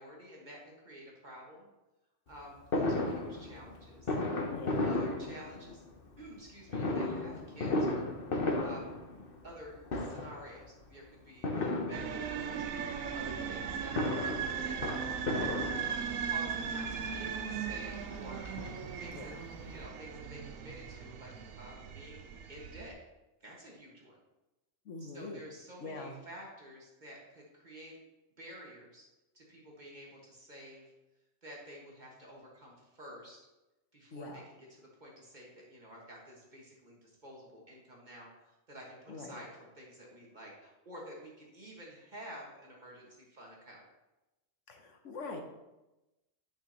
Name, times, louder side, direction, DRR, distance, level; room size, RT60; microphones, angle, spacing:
voice 1, 0.0-1.7 2.3-4.1 4.8-5.8 6.2-8.1 8.6-9.0 9.4-14.8 15.3-23.0 23.4-24.2 25.0-28.0 28.4-29.1 29.3-30.9 31.4-33.4 33.9-34.4 34.7-43.8, equal, 35° right, -3 dB, 1.8 m, -50 dB
Fireworks, 2.7-5.9 6.7-9.6 9.9-10.5 11.4-12.5 13.7-16.3 17.1-17.2 17.5-17.6 17.9-19.2 19.5-19.6 19.8-19.9, left 2 dB, 50° left, 1.1 m, -34 dB
voice 2, 4.5-4.9 19.1-19.4 24.8-25.4 25.8-26.1 34.1-34.4 39.1-39.4 44.7-45.4, left 3 dB, 70° left, 4 dB, 1.2 m, -43 dB
sound 1, 11.9-22.9, right 7 dB, 80° right, 1.0 m, -38 dB
9.0 x 6.1 x 2.9 m, 1.0 s
omnidirectional pair, 1.3 m